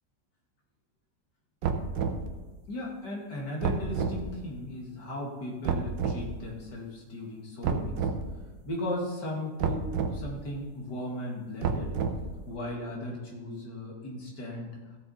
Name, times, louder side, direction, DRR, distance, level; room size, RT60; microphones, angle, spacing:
sound 1, 1.6-2.3 3.6-4.2 5.6-6.2 7.6-8.2 9.6-10.2 11.6-12.3, right 5 dB, 80° right, 1.5 m, -29 dB
voice 1, 2.7-8.1 8.6-9.9 10.1-12.0 12.5-14.7, left 1 dB, 65° left, -1 dB, 2.7 m, -36 dB
15.0 x 7.0 x 4.2 m, 1.2 s
omnidirectional pair, 2.0 m